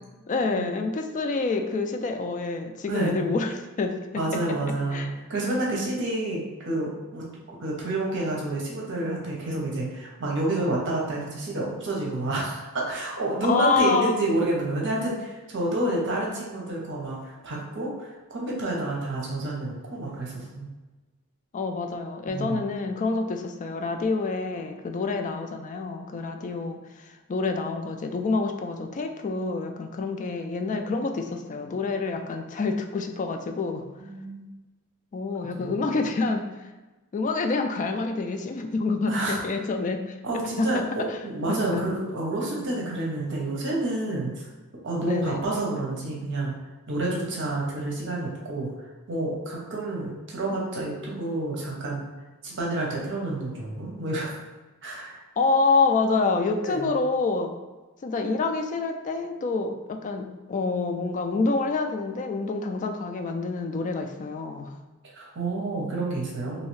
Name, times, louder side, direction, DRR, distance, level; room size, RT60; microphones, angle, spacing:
voice 1, 0.3-4.4 4.9-5.1 13.4-14.1 21.5-33.9 35.1-36.5 37.1-41.2 41.5-41.8 45.0-45.4 55.4-57.5 58.0-64.7, left 3 dB, 35° left, 5 dB, 0.3 m, -27 dB
voice 2, 2.9-3.2 4.1-20.7 22.3-22.7 30.8-31.0 34.0-34.5 35.6-35.8 39.1-39.4 40.2-44.5 44.8-46.5 46.9-48.7 49.1-52.1 52.4-54.4 54.8-55.2 56.6-56.9 65.0-66.7, right 2 dB, 60° right, -3 dB, 0.8 m, -29 dB
3.1 x 2.7 x 3.1 m, 1.2 s
head